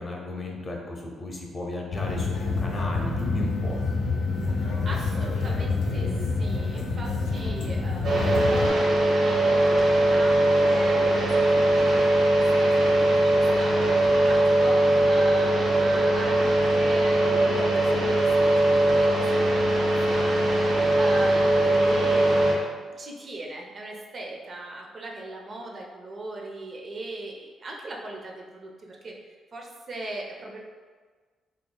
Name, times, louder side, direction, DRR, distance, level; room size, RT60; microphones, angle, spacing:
voice 1, 0.0-3.8, left 2 dB, 35° left, 0 dB, 0.6 m, -34 dB
sound 1, 1.9-8.7, left 3 dB, 85° left, 0.5 m, -27 dB
voice 2, 4.6-20.3 20.9-29.1 29.5-30.6, right 2 dB, 45° right, -1 dB, 0.5 m, -39 dB
sound 2, 8.0-22.5, right 1 dB, 65° right, 0.9 m, -21 dB
3.7 x 3.0 x 2.2 m, 1.5 s
cardioid pair, 90°, 0 cm